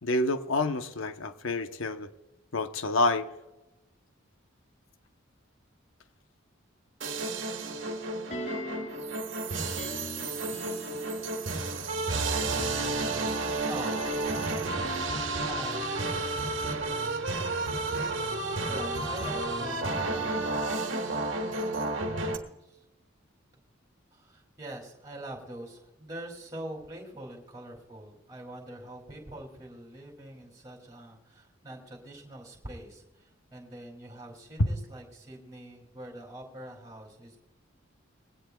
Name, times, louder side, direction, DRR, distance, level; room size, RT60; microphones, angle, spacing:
voice 1, 0.0-2.1 2.5-3.3 34.6-34.7, left 2 dB, 85° left, 8 dB, 0.9 m, -28 dB
sound 1, 7.0-22.4, right 2 dB, 65° right, 1.5 m, -31 dB
sound 2, 8.3-9.1 9.8-11.4 12.4-16.6 16.9-17.0, left 3 dB, 35° left, 0.7 m, -42 dB
voice 2, 13.7-14.4 15.4-16.0 18.6-20.4 21.5-22.8 24.1-37.4, right 1 dB, 15° right, 0 dB, 2.6 m, -44 dB
21.0 x 17.0 x 2.3 m, 1.0 s
head